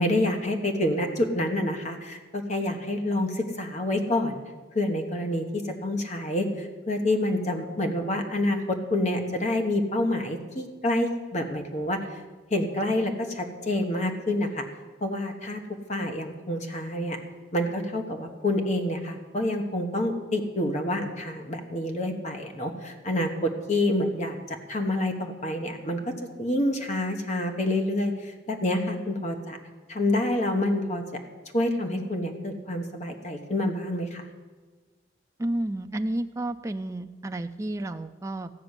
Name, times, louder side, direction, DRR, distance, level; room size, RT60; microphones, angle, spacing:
voice 1, 0.0-4.4 4.7-12.2 12.5-14.6 15.0-15.6 15.9-17.2 17.5-26.0 26.4-29.6 29.9-31.0 31.5-34.3, left 1 dB, 40° left, 5 dB, 1.1 m, -27 dB
voice 2, 35.4-38.5, right 1 dB, 15° right, 6 dB, 0.3 m, -31 dB
14.0 x 6.0 x 9.6 m, 1.4 s
head